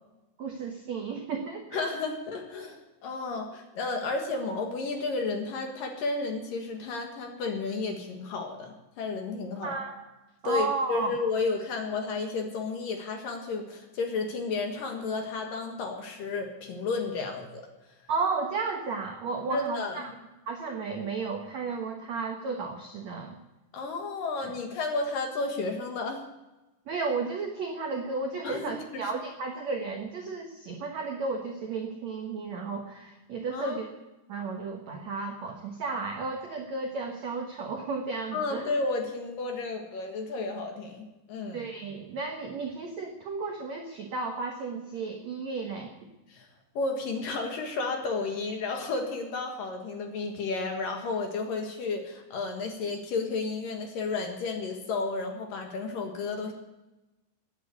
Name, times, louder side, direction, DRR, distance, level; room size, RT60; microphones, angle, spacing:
voice 1, 0.4-1.8 9.6-10.0 10.4-11.2 18.1-20.1 20.5-23.3 26.9-33.9 34.3-38.6 41.5-45.9, right 4 dB, 80° right, 2 dB, 1.5 m, -33 dB
voice 2, 1.7-9.7 10.4-17.7 19.5-20.1 23.7-26.2 28.4-29.1 33.5-33.8 38.3-41.6 46.3-46.5 46.7-56.5, left 3 dB, 60° left, 3 dB, 2.7 m, -32 dB
15.0 x 10.0 x 8.2 m, 1.0 s
omnidirectional pair, 5.3 m